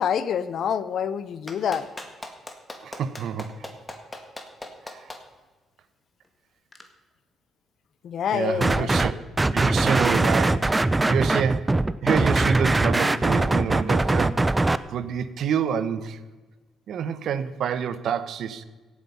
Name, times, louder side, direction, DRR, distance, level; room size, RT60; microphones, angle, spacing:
voice 1, 0.0-1.9 8.0-8.9, left 8 dB, 65° left, 15 dB, 0.8 m, -26 dB
Clapping, 1.5-5.2 6.7-6.8, left 2 dB, 15° left, 1.9 m, -38 dB
voice 2, 2.8-3.7 4.9-5.1 8.3-9.1 9.5-16.2 16.9-18.6, right 7 dB, 70° right, 13 dB, 0.8 m, -28 dB
sound 1, 8.6-9.1 9.4-14.8, right 2 dB, 20° right, 0.5 m, -21 dB
16.5 x 8.3 x 5.6 m, 1.3 s
cardioid pair, 90°, 0 cm